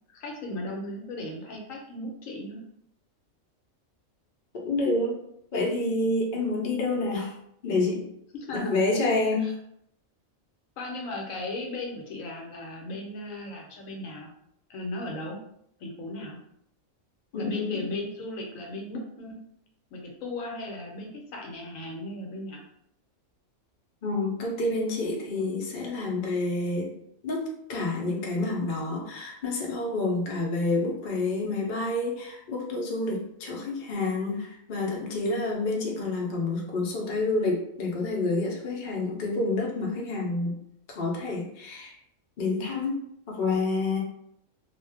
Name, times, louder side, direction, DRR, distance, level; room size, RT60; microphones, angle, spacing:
voice 1, 0.1-2.6 8.3-8.9 9.4-9.5 10.8-14.3 14.7-15.4 15.8-16.4 17.4-19.4 19.9-22.6, left 1 dB, 75° left, 0 dB, 1.0 m, -36 dB
voice 2, 4.5-5.2 5.5-7.3 7.6-8.1 8.5-9.5 17.3-17.9 24.0-26.9 27.2-40.5 40.9-42.0 42.4-43.0 43.3-44.0, left 2 dB, 50° left, -2 dB, 0.6 m, -28 dB
2.5 x 2.1 x 3.3 m, 0.74 s
omnidirectional pair, 1.4 m